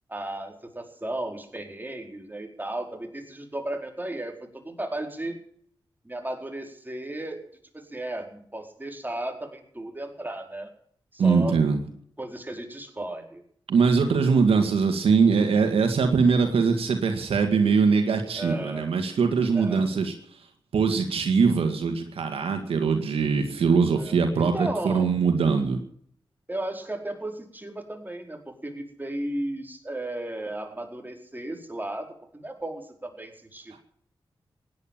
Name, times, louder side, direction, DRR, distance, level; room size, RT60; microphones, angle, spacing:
voice 1, 0.1-5.4 6.0-7.4 7.7-10.7 11.1-11.6 12.2-13.4 18.4-18.9 19.5-19.9 23.9-25.1 26.5-33.8, right 1 dB, 20° right, 3 dB, 4.6 m, -35 dB
voice 2, 11.2-11.8 13.7-20.1 20.7-25.8, right 5 dB, 85° right, 5 dB, 2.0 m, -22 dB
16.5 x 11.0 x 7.5 m, 0.63 s
cardioid pair, 45°, 9 cm